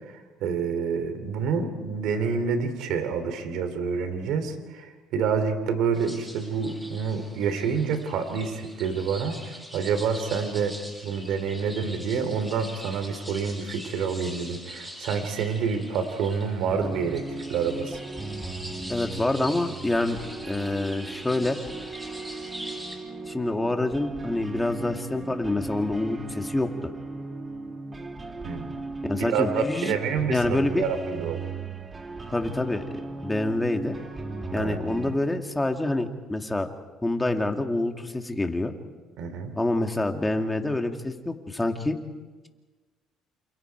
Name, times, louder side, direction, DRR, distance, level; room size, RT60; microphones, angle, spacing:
voice 1, 0.4-10.7 11.0-18.0 28.4-28.8 29.2-31.4 34.6-34.8 39.2-39.5, right 6 dB, 75° right, 9 dB, 2.9 m, -28 dB
sound 1, 5.9-23.0, equal, 5° right, 6.0 m, -43 dB
sound 2, 16.7-35.2, right 3 dB, 25° right, 2.3 m, -37 dB
voice 2, 18.9-20.2 20.4-21.6 23.3-26.9 29.0-30.0 30.3-30.8 32.3-32.9 33.2-33.9 34.5-36.7 37.0-38.7 39.6-42.0, left 2 dB, 10° left, 4 dB, 2.3 m, -27 dB
28.5 x 28.0 x 4.7 m, 1.3 s
cardioid pair, 95°, 0 cm